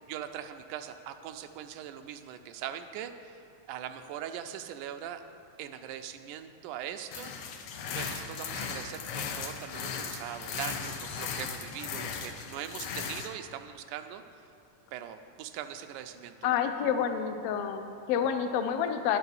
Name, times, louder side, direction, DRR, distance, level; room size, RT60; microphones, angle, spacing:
voice 1, 0.1-3.4 3.7-5.2 5.6-7.3 7.9-14.2 14.9-16.6, right 10 dB, 80° right, 8 dB, 2.0 m, -41 dB
sound 1, 7.1-13.3, left 6 dB, 75° left, 1.6 m, -37 dB
voice 2, 16.4-19.2, left 8 dB, 90° left, 6 dB, 1.3 m, -29 dB
10.5 x 6.6 x 7.1 m, 2.7 s
omnidirectional pair, 3.6 m